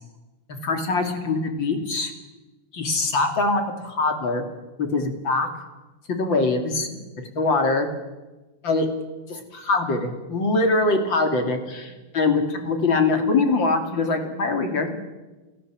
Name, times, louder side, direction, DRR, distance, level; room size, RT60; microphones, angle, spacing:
voice 1, 0.6-2.1 2.7-4.4 4.9-5.5 6.1-7.0 7.3-7.9 8.6-8.9 9.3-14.9, left 3 dB, 35° left, 5 dB, 3.0 m, -23 dB
28.0 x 17.5 x 7.6 m, 1.2 s
omnidirectional pair, 4.3 m